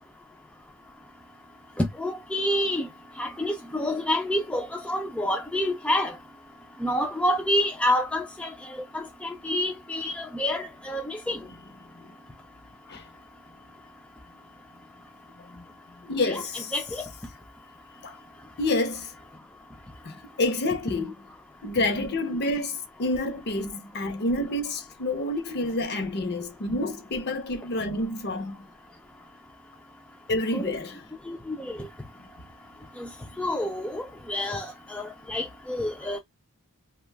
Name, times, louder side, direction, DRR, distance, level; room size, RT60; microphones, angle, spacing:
voice 1, 1.8-2.9 3.2-6.2 6.8-11.4 16.3-16.4 16.7-17.1 30.5-30.7 31.3-31.9 33.0-33.1 33.4-36.2, left 1 dB, 5° left, 0.3 m, -28 dB
voice 2, 16.0-16.7 18.0-18.2 18.6-19.1 20.0-21.1 21.6-28.6 30.3-31.0 36.0-36.1, left 2 dB, 50° left, 0.6 m, -28 dB
2.5 x 2.2 x 3.1 m
head